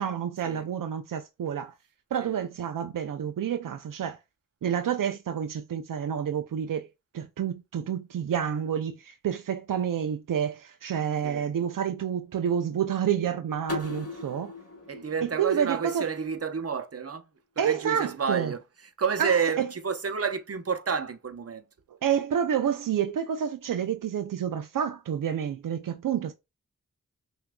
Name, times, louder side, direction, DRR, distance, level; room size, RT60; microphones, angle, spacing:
voice 1, 0.0-1.7 2.1-4.2 4.6-6.9 7.1-14.5 15.2-16.1 17.6-18.5 19.2-19.7 21.9-26.3, right 8 dB, 80° right, 0.5 m, -29 dB
sound 1, 13.7-16.5, left 3 dB, 50° left, 1.1 m, -39 dB
voice 2, 14.9-17.2 17.6-18.6 19.0-21.6, right 6 dB, 50° right, 0.8 m, -30 dB
5.8 x 2.7 x 2.2 m
cardioid pair, 55°, 32 cm